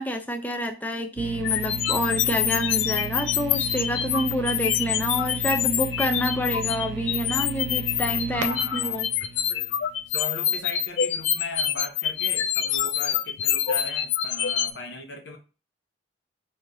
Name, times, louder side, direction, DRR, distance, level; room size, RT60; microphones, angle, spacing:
voice 1, 0.0-9.1, equal, 10° left, 0.4 m, -28 dB
sound 1, 1.2-10.1, right 4 dB, 80° right, 0.5 m, -35 dB
sound 2, 1.4-14.7, left 10 dB, 85° left, 0.3 m, -26 dB
voice 2, 8.3-9.0 9.5-9.8 10.1-15.4, left 2 dB, 70° left, 1.0 m, -38 dB
3.2 x 2.7 x 3.7 m
head